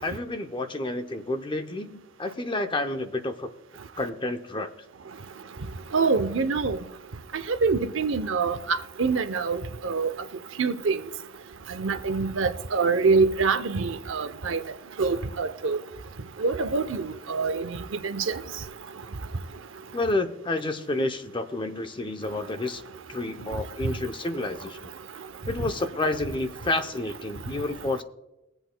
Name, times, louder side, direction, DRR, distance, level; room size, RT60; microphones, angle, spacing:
voice 1, 0.0-3.5 4.0-4.7 19.9-22.8 23.1-24.9 25.5-28.0, left 2 dB, 25° left, 0.6 m, -30 dB
voice 2, 5.9-6.8 7.6-9.6 9.8-10.1 10.6-11.0 11.7-14.6 15.0-15.8 16.4-16.8 17.3-17.7 18.0-18.3, right 4 dB, 70° right, 0.7 m, -25 dB
21.5 x 7.9 x 2.2 m
head